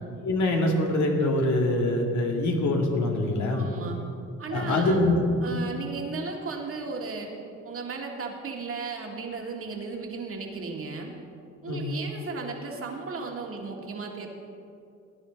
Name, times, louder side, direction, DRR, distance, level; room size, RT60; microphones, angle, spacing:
voice 1, 0.2-3.7 4.5-5.2 11.7-11.8, left 1 dB, 70° left, 1 dB, 2.1 m, -24 dB
voice 2, 3.5-4.0 4.4-5.1 5.4-7.3 7.6-11.1 11.6-14.3, right 4 dB, 45° right, 1 dB, 1.9 m, -35 dB
17.5 x 9.9 x 4.0 m, 2.5 s
cardioid pair, 90°, 30 cm